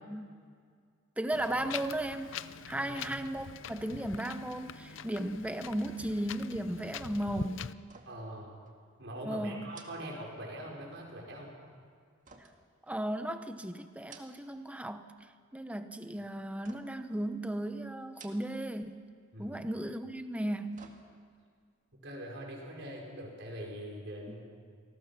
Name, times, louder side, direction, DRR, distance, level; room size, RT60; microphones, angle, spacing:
voice 1, 1.2-2.3 2.7-7.7 9.2-9.6 12.9-15.1 15.5-19.0 19.4-20.8, right 1 dB, 5° right, 8 dB, 0.9 m, -35 dB
Wind, 1.3-7.7, left 7 dB, 65° left, 0.6 m, -44 dB
voice 2, 2.7-3.1 8.1-8.5 9.0-11.5 19.3-19.6 21.9-24.4, right 1 dB, 60° right, -2 dB, 5.3 m, -43 dB
sound 1, 7.8-8.4 8.7-8.8 9.7-10.8 12.2-13.4 13.9-14.7 15.0-15.6 16.6-17.1 18.0-18.8 19.1-19.2 20.3-21.5 21.9-22.0, right 4 dB, 40° right, 2.0 m, -56 dB
28.0 x 19.5 x 6.0 m, 2.1 s
head